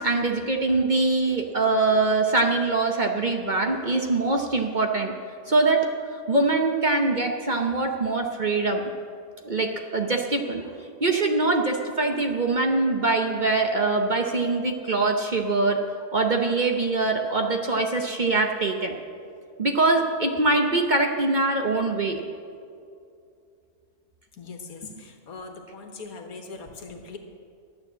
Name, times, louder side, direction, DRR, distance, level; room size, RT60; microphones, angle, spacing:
voice 1, 0.0-5.1 5.5-5.9 6.3-8.8 9.4-15.8 16.1-18.9 19.6-22.2, right 3 dB, 40° right, 2 dB, 0.8 m, -23 dB
voice 2, 24.3-27.2, left 3 dB, 80° left, 4 dB, 1.8 m, -40 dB
12.5 x 8.8 x 7.3 m, 2.4 s
omnidirectional pair, 1.5 m